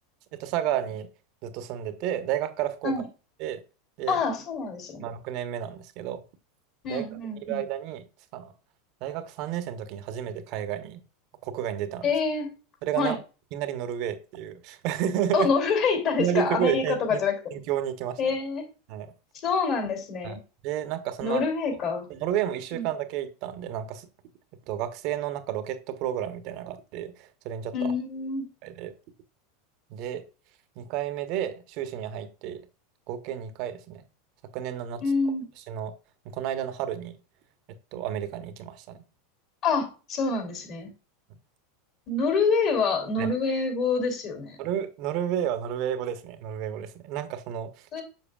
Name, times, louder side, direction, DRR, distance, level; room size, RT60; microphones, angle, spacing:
voice 1, 0.3-1.1 1.4-3.0 3.4-3.6 4.0-4.2 5.0-6.2 6.9-8.0 8.3-8.5 9.0-11.0 11.4-12.1 12.8-13.2 13.5-15.5 16.2-17.2 17.5-18.2 18.9-19.1 20.2-20.4 20.6-21.4 22.1-24.1 24.7-27.9 28.6-28.9 29.9-30.2 30.8-32.7 33.1-34.0 34.5-35.0 35.7-35.9 36.2-37.2 37.9-39.0 43.2-43.3 44.6-47.9, right 10 dB, 55° right, 1.0 m, -31 dB
voice 2, 4.1-5.1 6.8-7.6 12.0-12.5 13.0-13.2 15.3-17.4 18.2-18.7 19.4-20.4 21.2-22.0 22.7-22.9 27.7-28.5 35.0-35.5 39.6-40.9 42.1-44.6 47.9-48.0, left 4 dB, 45° left, 2.8 m, -26 dB
7.4 x 6.3 x 2.3 m
hypercardioid pair, 100°, 0 cm